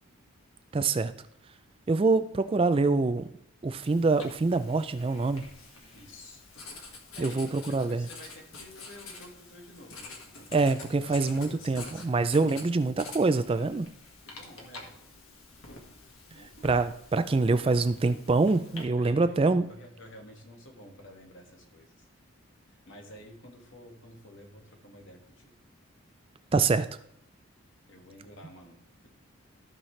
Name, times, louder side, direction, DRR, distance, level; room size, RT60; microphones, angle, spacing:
voice 1, 0.7-1.1 1.9-3.3 3.6-5.4 7.2-8.1 10.5-13.9 16.6-19.7 26.5-26.9, right 3 dB, 25° right, 11 dB, 0.3 m, -25 dB
Writing, 3.8-18.8, left 3 dB, 80° left, 1.7 m, -47 dB
voice 2, 5.9-6.4 7.1-12.6 14.3-15.0 16.3-16.8 18.9-22.1 22.7-25.5 27.9-29.1, left 1 dB, 60° left, 2 dB, 1.9 m, -51 dB
14.5 x 5.7 x 3.2 m, 0.76 s
head